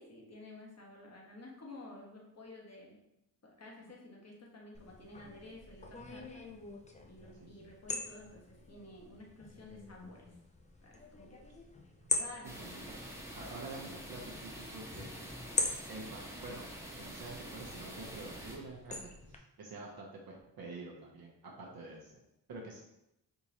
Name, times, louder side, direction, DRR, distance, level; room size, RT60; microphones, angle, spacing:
voice 1, 0.0-3.0 3.4-6.4 7.0-8.4 8.7-10.3 10.8-11.3 12.1-12.7, left 2 dB, 40° left, -1 dB, 1.2 m, -52 dB
sound 1, 4.7-19.4, left 3 dB, 20° left, 0.5 m, -43 dB
voice 2, 12.0-13.0 13.3-15.1 15.9-22.1 22.5-22.8, right 3 dB, 65° right, -2 dB, 0.8 m, -48 dB
sound 2, 12.4-18.6, equal, 5° right, 0.9 m, -46 dB
3.6 x 2.9 x 2.8 m, 0.85 s
cardioid pair, 60°, 38 cm